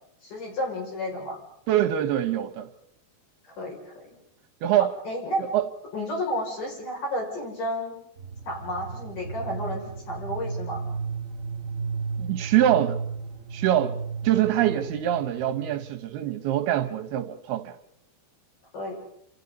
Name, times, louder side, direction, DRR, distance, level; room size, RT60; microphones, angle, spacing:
voice 1, 0.2-1.4 3.4-4.2 5.0-5.5 5.9-8.0 8.5-10.8 14.7-14.8 18.7-18.9, left 1 dB, 50° left, 7.7 m, -32 dB
voice 2, 1.7-2.7 4.6-4.9 5.5-5.7 12.2-13.0 13.5-14.0 14.2-17.7, right 12 dB, 75° right, 2.8 m, -24 dB
sound 1, 8.2-16.0, right 4 dB, 25° right, 4.5 m, -34 dB
28.5 x 28.0 x 4.1 m
omnidirectional pair, 4.9 m